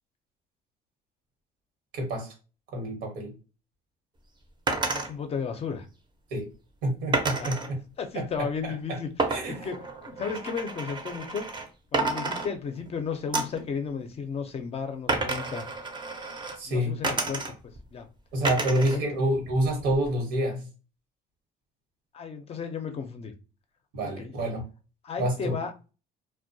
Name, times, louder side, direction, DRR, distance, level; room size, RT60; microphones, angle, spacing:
voice 1, 1.9-2.3 2.7-3.3 6.3-6.5 6.8-7.6 8.1-8.5 8.9-9.0 9.3-9.7 16.6-16.9 18.3-20.7 23.9-24.6 25.2-25.5, right 1 dB, 90° right, 1.0 m, -28 dB
sound 1, 4.7-5.1 7.1-7.7 9.2-11.7 11.9-12.9 13.3-13.7 15.1-16.6 17.0-17.8 18.4-19.0 19.3-20.1, right 3 dB, 25° right, 0.5 m, -30 dB
voice 2, 4.9-5.9 7.3-7.5 8.0-9.1 9.5-11.5 11.9-15.6 16.7-17.5 17.9-18.1 18.6-18.7 18.9-19.0 22.1-23.3 24.0-24.3 25.0-25.7, left 6 dB, 35° left, 0.5 m, -34 dB
2.2 x 2.1 x 2.6 m
cardioid pair, 110°, 17 cm